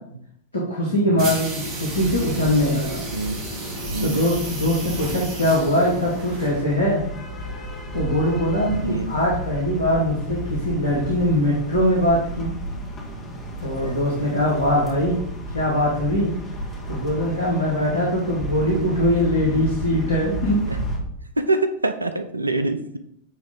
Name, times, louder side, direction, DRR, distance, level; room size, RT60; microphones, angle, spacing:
voice 1, 0.5-3.0 4.0-7.0 7.5-7.7 7.9-12.5 13.6-15.2 15.5-16.3 16.9-20.6, left 1 dB, 80° left, -4 dB, 1.4 m, -22 dB
sound 1, 1.2-6.8, right 2 dB, 45° right, 2.1 m, -33 dB
sound 2, 1.9-21.0, right 1 dB, 25° left, 1.6 m, -33 dB
voice 2, 8.7-9.2 21.4-23.0, right 2 dB, 80° right, 8 dB, 0.5 m, -25 dB
9.1 x 3.2 x 3.7 m, 0.70 s
figure-of-eight pair, 90°, 0 cm